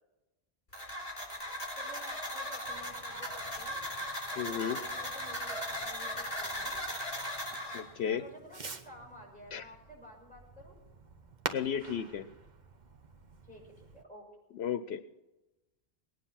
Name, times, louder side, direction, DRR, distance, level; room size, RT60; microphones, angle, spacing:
sound 1, 0.7-7.8, equal, 45° left, 4.2 m, -38 dB
voice 1, 1.7-3.8 4.3-6.8 7.9-10.8 13.4-14.3, left 1 dB, 5° left, -2 dB, 6.0 m, -52 dB
Fireworks, 2.6-14.0, right 4 dB, 45° right, 1.0 m, -48 dB
voice 2, 4.4-4.8 7.7-8.2 9.5-9.6 11.5-12.3 14.6-15.0, left 8 dB, 80° left, 10 dB, 0.9 m, -33 dB
20.0 x 9.6 x 5.7 m, 1.0 s
omnidirectional pair, 1.1 m